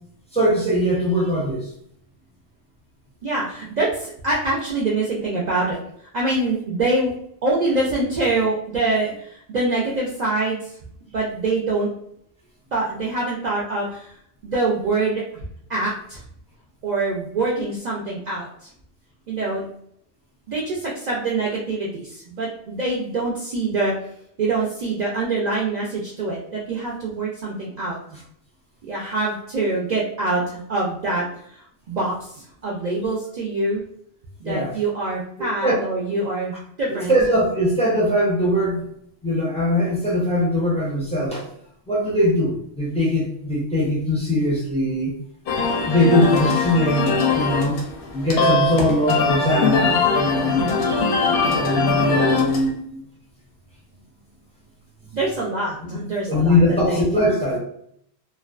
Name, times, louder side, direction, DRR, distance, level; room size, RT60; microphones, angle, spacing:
voice 1, 0.3-1.7 34.4-34.7 35.6-35.7 36.9-38.8 39.2-41.5 41.9-45.2 45.9-47.8 48.1-50.8 51.6-53.0 56.3-57.6, left 1 dB, 10° left, -5 dB, 0.5 m, -21 dB
voice 2, 3.2-5.8 6.1-7.1 7.4-10.6 11.1-11.9 12.7-14.1 14.4-15.2 15.7-16.2 16.8-18.5 19.3-19.7 20.5-24.0 24.4-28.0 28.8-31.2 31.5-33.8 34.4-37.1 55.1-56.6 56.9-57.2, right 2 dB, 55° right, -4 dB, 0.5 m, -24 dB
sound 1, 45.5-52.7, left 4 dB, 85° left, 0.9 m, -21 dB
2.5 x 2.1 x 2.3 m, 0.68 s
omnidirectional pair, 1.1 m